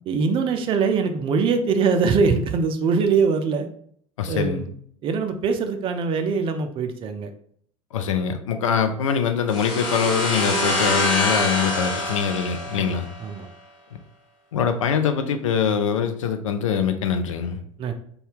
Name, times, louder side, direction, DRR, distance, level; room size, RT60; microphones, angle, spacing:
voice 1, 0.1-3.7 4.3-4.7 5.0-7.3 12.7-13.5 17.8-17.9, right 5 dB, 30° right, 7 dB, 0.4 m, -23 dB
voice 2, 4.2-4.6 7.9-13.1 14.5-17.6, left 7 dB, 70° left, 7 dB, 0.4 m, -23 dB
sound 1, 9.5-13.2, left 1 dB, 50° left, 1.0 m, -25 dB
2.7 x 2.2 x 3.3 m, 0.63 s
figure-of-eight pair, 70°, 17 cm